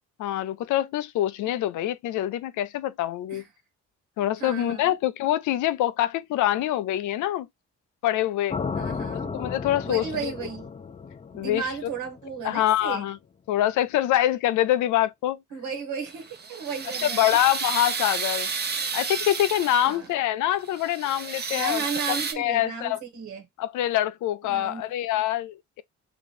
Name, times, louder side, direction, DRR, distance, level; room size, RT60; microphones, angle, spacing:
voice 1, 0.2-3.4 4.2-7.5 8.0-8.6 9.3-10.3 11.3-11.7 12.4-13.2 13.5-15.4 17.0-18.5 18.9-23.0 23.6-25.8, left 13 dB, 80° left, 0.5 m, -25 dB
voice 2, 4.4-4.9 8.7-9.3 9.8-10.7 11.4-13.0 15.5-17.4 19.8-20.1 21.5-23.4 24.5-24.8, right 6 dB, 85° right, 1.3 m, -34 dB
sound 1, 8.5-12.6, left 5 dB, 20° left, 0.4 m, -34 dB
sound 2, 16.1-20.1 20.6-22.3, right 5 dB, 35° right, 0.7 m, -31 dB
3.0 x 2.9 x 4.0 m
cardioid pair, 90°, 30 cm